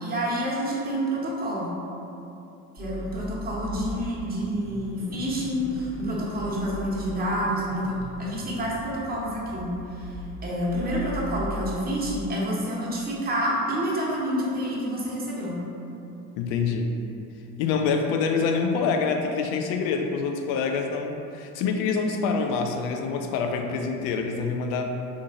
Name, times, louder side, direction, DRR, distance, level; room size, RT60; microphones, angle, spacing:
voice 1, 0.0-1.7 2.8-10.1 10.4-15.6, equal, 20° right, -5 dB, 0.9 m, -28 dB
Car / Idling / Accelerating revving vroom, 2.8-12.2, left 1 dB, 30° left, 1.1 m, -39 dB
voice 2, 16.4-17.0 17.6-24.9, left 5 dB, 45° left, 4 dB, 0.4 m, -26 dB
3.6 x 2.6 x 3.7 m, 2.8 s
figure-of-eight pair, 60°, 46 cm